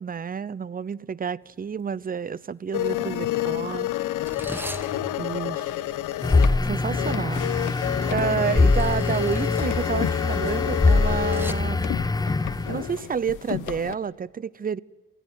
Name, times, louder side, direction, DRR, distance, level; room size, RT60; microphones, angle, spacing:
voice 1, 0.0-3.9 5.2-5.7 6.7-7.4 8.1-12.0 12.7-14.8, right 6 dB, 30° right, 0.7 m, -29 dB
sound 1, 1.5-1.7 1.9-2.3 3.0-11.5, right 1 dB, 5° right, 1.8 m, -42 dB
sound 2, 2.7-13.9, left 14 dB, 85° left, 1.4 m, -30 dB
sound 3, 6.2-12.9, left 3 dB, 15° left, 0.6 m, -23 dB
27.5 x 16.5 x 9.4 m
cardioid pair, 90°, 30 cm